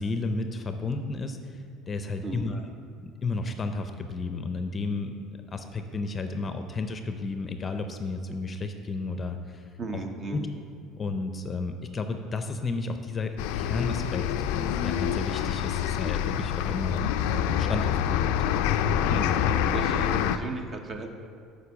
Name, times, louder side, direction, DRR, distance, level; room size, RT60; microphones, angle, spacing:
voice 1, 0.0-1.6 1.9-2.6 3.0-9.6 9.9-10.0 10.3-10.5 11.0-17.0 17.3-18.3, left 3 dB, 25° left, 7 dB, 0.6 m, -32 dB
voice 2, 9.8-10.5 19.1-19.5 19.7-21.1, right 3 dB, 35° right, 5 dB, 1.0 m, -35 dB
sound 1, 13.4-20.4, left 9 dB, 80° left, 0.4 m, -26 dB
8.1 x 5.5 x 7.2 m, 2.2 s
cardioid pair, 120°, 0 cm